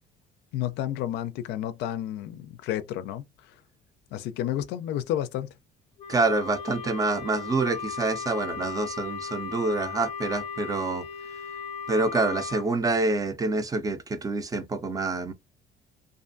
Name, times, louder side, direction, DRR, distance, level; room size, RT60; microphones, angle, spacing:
voice 1, 0.5-3.2 4.1-5.5, left 12 dB, 85° left, 0.4 m, -31 dB
Wind instrument woodwind instrument, 6.0-12.7, left 6 dB, 40° left, 0.6 m, -37 dB
voice 2, 6.1-11.0 11.9-15.3, right 3 dB, 20° right, 0.5 m, -27 dB
2.5 x 2.4 x 2.5 m
cardioid pair, 110°, 17 cm